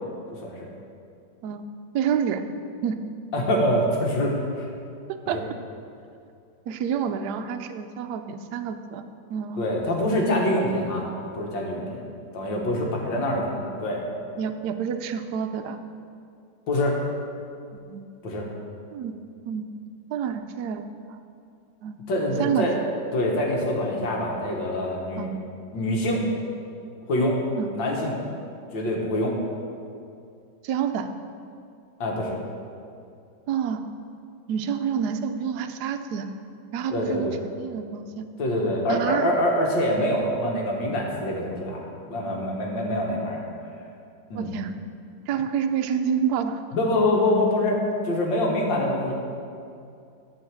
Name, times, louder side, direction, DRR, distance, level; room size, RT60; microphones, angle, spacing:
voice 1, 0.3-0.7 3.3-4.7 5.3-5.4 9.6-12.0 12.3-14.0 16.7-17.0 18.2-18.5 22.1-22.7 23.1-25.3 25.7-26.2 27.1-27.4 27.7-28.2 28.7-29.4 32.0-32.4 36.9-37.4 38.4-43.4 44.3-44.5 46.7-49.1, left 1 dB, 70° left, -1 dB, 2.0 m, -25 dB
voice 2, 1.9-2.4 2.8-3.0 5.3-5.4 6.7-9.0 9.3-9.6 14.4-15.8 17.9-18.2 18.9-19.1 19.5-19.7 20.1-21.2 21.8-22.0 22.4-22.7 25.2-25.3 27.6-27.7 30.6-31.1 33.5-33.8 34.5-36.3 36.7-37.3 37.6-38.2 38.9-39.3 44.3-44.8 45.3-46.6, right 8 dB, 70° right, 7 dB, 1.0 m, -28 dB
11.0 x 4.0 x 7.4 m, 2.5 s
omnidirectional pair, 2.1 m